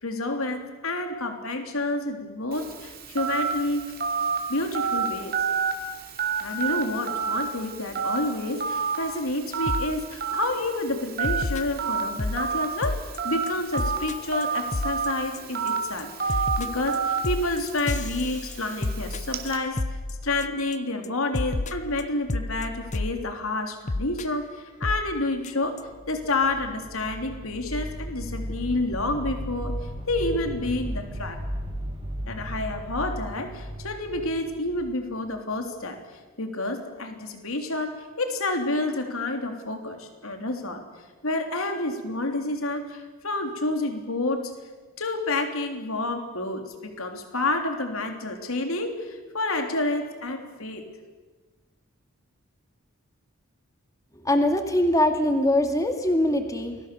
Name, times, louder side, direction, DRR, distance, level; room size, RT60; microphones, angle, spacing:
voice 1, 0.0-4.0 4.5-5.4 6.4-19.8 20.2-25.8 26.1-29.8 30.1-31.4 32.3-36.0 36.4-40.8 41.2-44.5 45.0-50.8, left 2 dB, 70° left, 5 dB, 3.4 m, -29 dB
Telephone, 2.5-19.6, right 5 dB, 40° right, 3.0 m, -30 dB
sound 1, 9.7-9.9 10.3-10.6 11.2-12.4 12.8-13.2 13.5-13.6 13.8-14.1 14.4-14.5 14.7-15.1 15.3-15.7 16.0-20.8 21.0-21.1 21.3-23.2 23.9-24.2 24.8-25.1 25.4-25.5 25.8-25.9, left 2 dB, 35° left, 0.7 m, -30 dB
sound 2, 25.8-35.6, equal, 20° right, 5.6 m, -35 dB
voice 2, 54.2-56.8, left 1 dB, 15° left, 5 dB, 2.2 m, -22 dB
29.0 x 22.0 x 7.0 m, 1.4 s
head